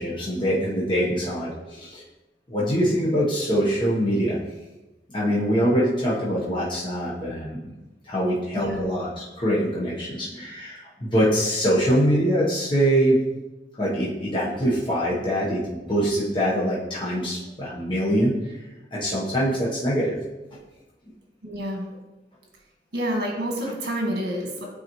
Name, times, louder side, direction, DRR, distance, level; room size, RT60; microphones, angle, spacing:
voice 1, 0.0-2.0 2.5-4.4 5.1-7.7 8.1-13.2 13.8-18.5 18.9-20.2, equal, 30° left, -7 dB, 1.0 m, -24 dB
voice 2, 21.4-21.8 22.9-24.6, equal, 65° right, 0 dB, 1.5 m, -28 dB
8.7 x 4.0 x 3.0 m, 1.1 s
head